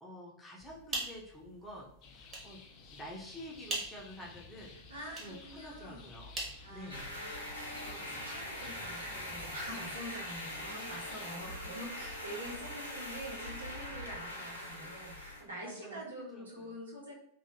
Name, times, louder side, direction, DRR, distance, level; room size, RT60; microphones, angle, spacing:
voice 1, 0.0-2.7 2.9-4.7 5.2-6.3 6.7-7.2 15.6-16.8, equal, 10° left, -4 dB, 0.7 m, -49 dB
sound 1, 0.6-7.4, right 2 dB, 25° right, 1.0 m, -44 dB
sound 2, 2.0-11.3, left 4 dB, 40° left, 0.5 m, -53 dB
voice 2, 4.9-6.1 6.6-17.2, right 1 dB, 70° right, -4 dB, 0.9 m, -46 dB
sound 3, 6.9-15.4, left 1 dB, 85° left, 0.6 m, -42 dB
2.9 x 2.4 x 2.8 m, 0.71 s
figure-of-eight pair, 90°, 0 cm